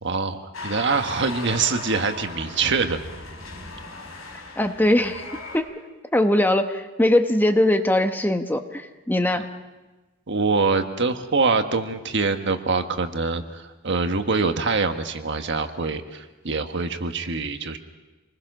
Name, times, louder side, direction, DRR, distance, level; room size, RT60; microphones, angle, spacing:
voice 1, 0.0-3.0 10.3-17.8, right 4 dB, 60° right, 6 dB, 1.4 m, -24 dB
sound 1, 0.5-5.6, left 3 dB, 90° left, 4.9 m, -37 dB
voice 2, 4.6-5.2 5.5-5.6 6.1-9.4, left 1 dB, 10° left, 6 dB, 1.0 m, -21 dB
27.0 x 20.5 x 6.2 m, 1.2 s
head